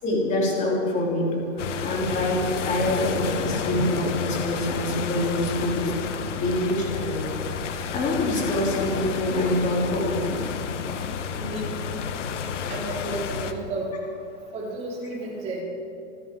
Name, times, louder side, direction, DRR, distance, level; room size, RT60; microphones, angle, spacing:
voice 1, 0.0-5.9 6.4-7.3 7.9-10.4 10.8-10.9, left 1 dB, 20° left, -3 dB, 3.7 m, -25 dB
sound 1, 1.6-13.5, left 6 dB, 70° left, 1.4 m, -30 dB
voice 2, 11.4-11.9 12.7-13.9 14.5-15.6, right 2 dB, 20° right, -6 dB, 4.7 m, -32 dB
27.0 x 12.5 x 3.9 m, 2.5 s
supercardioid pair, 160°, 37 cm